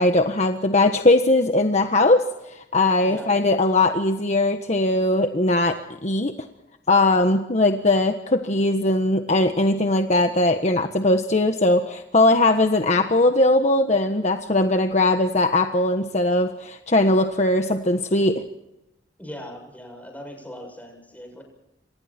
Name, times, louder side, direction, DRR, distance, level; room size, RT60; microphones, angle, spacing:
voice 1, 0.0-2.2 2.5-6.3 6.9-18.4, left 2 dB, 40° left, 6 dB, 1.4 m, -20 dB
voice 2, 19.2-21.4, equal, 10° left, 3 dB, 7.4 m, -39 dB
29.5 x 26.5 x 4.5 m, 0.87 s
head